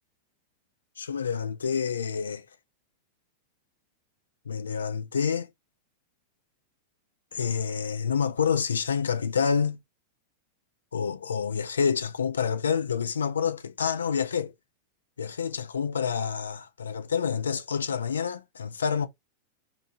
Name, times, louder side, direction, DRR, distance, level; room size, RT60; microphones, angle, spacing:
voice 1, 1.0-2.5 4.5-5.5 7.3-9.8 10.9-14.5 15.2-19.1, left 6 dB, 85° left, 0.4 m, -28 dB
2.7 x 2.4 x 2.6 m
hypercardioid pair, 100°, 0 cm